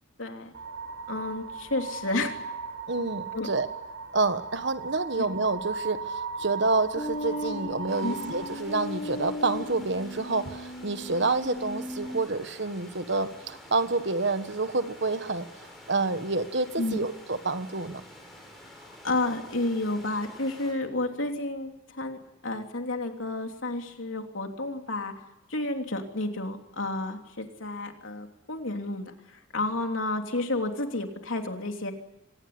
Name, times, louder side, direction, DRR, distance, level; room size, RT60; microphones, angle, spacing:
voice 1, 0.2-0.5 1.1-2.3 3.3-3.5 5.2-5.3 8.0-8.2 16.8-17.0 18.8-25.1 25.5-31.9, left 2 dB, 80° left, 4 dB, 3.2 m, -31 dB
sound 1, 0.5-8.6, right 5 dB, 90° right, 4.3 m, -38 dB
voice 2, 2.9-3.7 4.1-15.5 15.9-18.0, right 3 dB, 60° right, 10 dB, 1.5 m, -28 dB
sound 2, 6.9-12.2, left 1 dB, 30° left, 4.8 m, -37 dB
sound 3, 7.9-20.7, left 1 dB, ahead, 7.4 m, -49 dB
25.5 x 19.0 x 9.6 m, 0.90 s
head